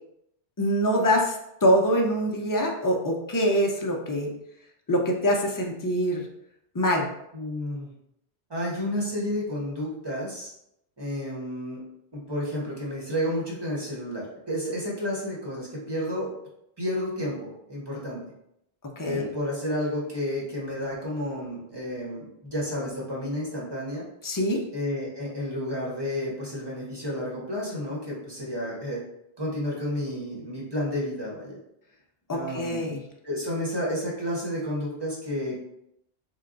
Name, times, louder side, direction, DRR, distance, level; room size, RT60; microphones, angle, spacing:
voice 1, 0.6-1.4 1.6-4.3 4.9-6.2 6.7-7.1 19.0-19.3 24.2-24.6 32.3-33.0, equal, 35° left, 1 dB, 0.3 m, -24 dB
voice 2, 7.3-7.9 8.5-10.5 11.0-11.8 12.1-16.3 16.8-18.2 19.0-24.0 24.7-29.0 29.4-31.6 32.3-32.9 33.2-35.6, left 1 dB, 25° right, -4 dB, 1.1 m, -31 dB
3.6 x 2.2 x 3.8 m, 0.78 s
omnidirectional pair, 1.1 m